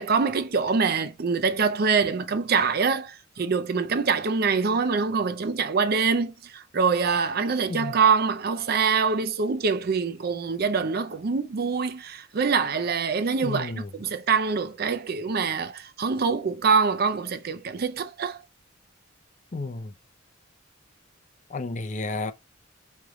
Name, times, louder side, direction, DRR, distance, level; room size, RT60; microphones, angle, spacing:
voice 1, 0.0-18.4, right 5 dB, 50° right, 0.5 m, -25 dB
voice 2, 13.4-13.9 19.5-19.9 21.5-22.3, left 3 dB, 35° left, 0.5 m, -32 dB
5.0 x 3.2 x 3.0 m
head